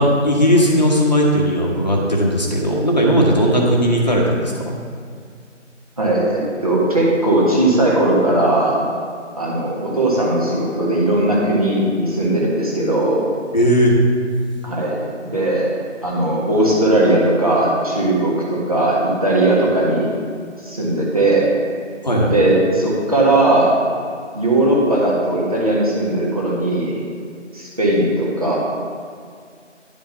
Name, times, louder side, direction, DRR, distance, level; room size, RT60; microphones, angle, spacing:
voice 1, 0.0-4.8 13.5-13.9 22.0-22.3, equal, 35° left, -2 dB, 1.2 m, -16 dB
voice 2, 6.0-8.8 9.4-13.2 14.6-15.0 15.2-15.7 16.0-20.1 20.6-21.5 22.2-23.7 24.3-27.0 27.5-28.6, right 1 dB, 30° right, -5 dB, 1.5 m, -18 dB
10.5 x 5.1 x 5.8 m, 2.1 s
figure-of-eight pair, 175°, 37 cm